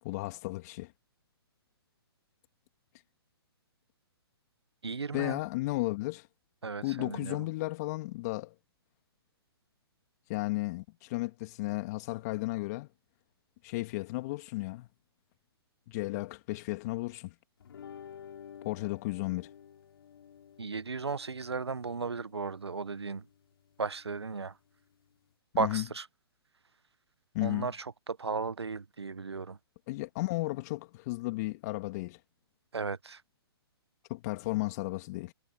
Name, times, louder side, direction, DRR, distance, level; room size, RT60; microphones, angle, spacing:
voice 1, 0.0-0.9 5.1-6.3 6.8-8.5 10.3-12.9 13.6-14.9 15.9-17.3 18.6-19.5 25.6-25.9 27.3-27.7 29.9-32.2 34.1-35.3, left 21 dB, 40° left, 2.4 m, -34 dB
voice 2, 4.8-5.4 6.6-7.4 20.6-23.2 23.8-24.6 25.5-26.1 27.4-29.6 32.7-33.2, right 4 dB, 90° right, 1.2 m, -35 dB
sound 1, 17.6-25.3, left 8 dB, 65° left, 6.5 m, -53 dB
hypercardioid pair, 130°, 13 cm